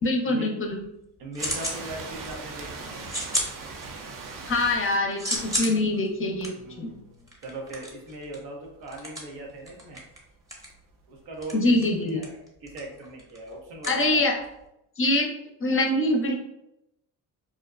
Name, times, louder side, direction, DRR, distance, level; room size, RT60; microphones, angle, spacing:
voice 1, 0.0-0.8 4.5-6.9 11.5-12.2 13.9-14.3 15.0-15.3 15.6-16.4, left 2 dB, 30° left, 2 dB, 0.5 m, -24 dB
sound 1, 0.7-1.8 2.2-2.6 3.0-4.2 4.6-14.7, equal, 5° right, 0.7 m, -34 dB
voice 2, 1.2-3.0 6.6-10.0 11.1-14.2, right 1 dB, 90° right, 0 dB, 0.7 m, -40 dB
sound 2, 1.4-5.0 5.3-5.6 6.4-6.5 10.7-10.8, right 4 dB, 45° right, 0.5 m, -39 dB
2.6 x 2.1 x 2.3 m, 0.84 s
supercardioid pair, 60°, 46 cm